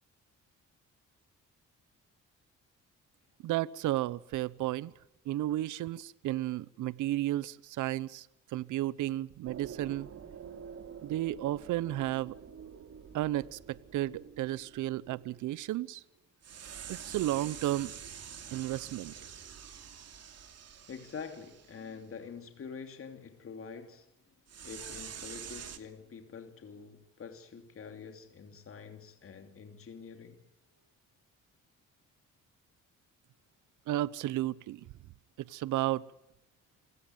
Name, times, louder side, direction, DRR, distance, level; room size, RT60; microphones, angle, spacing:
voice 1, 3.4-4.9 5.2-10.1 11.0-12.4 13.1-16.0 16.9-17.9 18.5-19.1 33.9-34.9 35.4-36.1, right 15 dB, 80° right, 0.8 m, -33 dB
sound 1, 9.4-15.9 16.4-21.9 24.5-25.8, right 7 dB, 55° right, 2.7 m, -47 dB
voice 2, 20.9-24.1 24.6-30.4, left 6 dB, 45° left, 2.9 m, -46 dB
26.5 x 17.0 x 9.2 m
cardioid pair, 90°, 30 cm